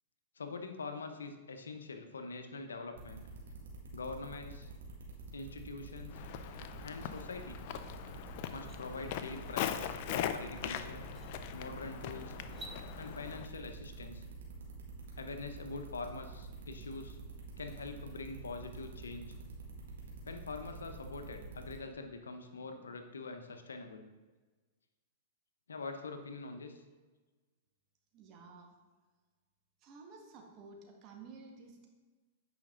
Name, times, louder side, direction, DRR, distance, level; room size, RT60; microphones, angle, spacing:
voice 1, 0.4-3.2 3.9-4.7 5.3-6.2 6.8-7.6 8.5-11.1 11.5-12.3 13.0-14.3 15.1-17.2 17.6-19.3 20.2-24.1 25.7-26.8, left 3 dB, 90° left, 7 dB, 0.8 m, -44 dB
sound 1, 3.0-21.7, right 4 dB, 80° right, 1.9 m, -48 dB
Walk footsteps, 6.1-13.5, left 10 dB, 55° left, 0.5 m, -41 dB
sound 2, 7.8-7.9 8.3-8.8 10.4-10.5 11.0-11.3 12.4-12.8, right 2 dB, 25° right, 1.2 m, -51 dB
voice 2, 28.1-28.8 29.8-31.9, right 4 dB, 40° right, 1 dB, 1.6 m, -53 dB
8.8 x 5.2 x 3.8 m, 1.3 s
hypercardioid pair, 115°, 0 cm